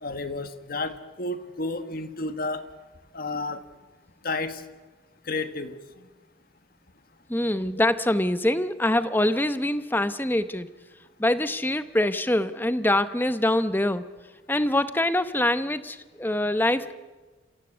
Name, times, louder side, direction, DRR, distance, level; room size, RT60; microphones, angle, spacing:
voice 1, 0.0-2.6 3.1-3.6 4.2-4.6 5.3-5.8 16.8-16.9, left 2 dB, 50° left, 9 dB, 1.5 m, -31 dB
voice 2, 7.3-10.7 11.2-14.1 14.5-16.9, left 1 dB, 10° left, 12 dB, 0.9 m, -24 dB
28.5 x 16.0 x 8.1 m, 1.3 s
head